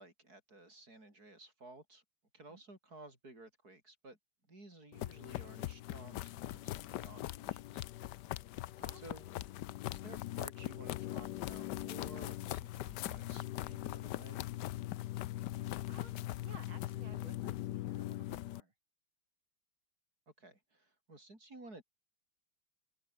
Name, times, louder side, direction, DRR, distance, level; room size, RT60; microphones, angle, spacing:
voice 1, 0.0-2.0 2.3-4.2 4.5-8.2 9.0-9.3 9.8-14.5 20.4-21.8, right 2 dB, 45° right, 8.1 m, -55 dB
sound 1, 4.9-18.6, left 15 dB, 70° left, 1.1 m, -41 dB
voice 2, 8.8-9.4 15.4-18.7, right 3 dB, 80° right, 5.5 m, -58 dB
open air
omnidirectional pair, 2.2 m